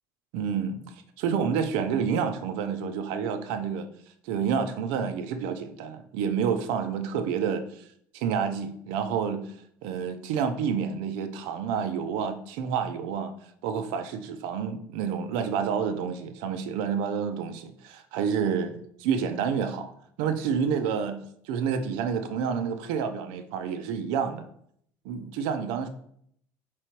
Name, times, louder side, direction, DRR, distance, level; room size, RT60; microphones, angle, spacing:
voice 1, 0.3-3.9 4.2-7.8 8.1-9.4 9.8-13.3 13.6-19.9 20.2-24.5 25.0-25.9, right 7 dB, 80° right, 0.5 m, -29 dB
3.8 x 3.0 x 4.5 m
cardioid pair, 155°, 8 cm